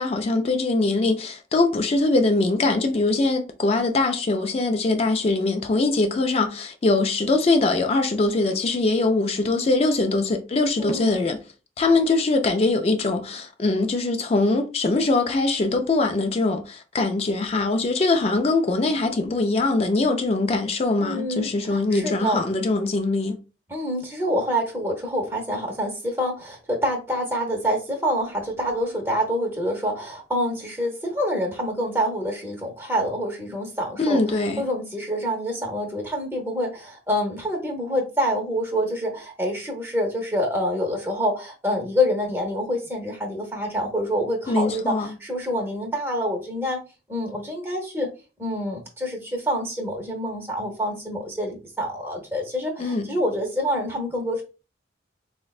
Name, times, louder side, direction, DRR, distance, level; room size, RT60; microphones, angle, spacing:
voice 1, 0.0-11.4 11.8-23.4 34.0-34.6 44.5-45.2 52.8-53.1, left 3 dB, 35° left, 0.3 m, -22 dB
voice 2, 10.8-11.2 21.0-22.4 23.7-46.8 47.1-48.1 48.4-54.4, equal, 10° right, 0.7 m, -27 dB
4.2 x 2.1 x 2.3 m
head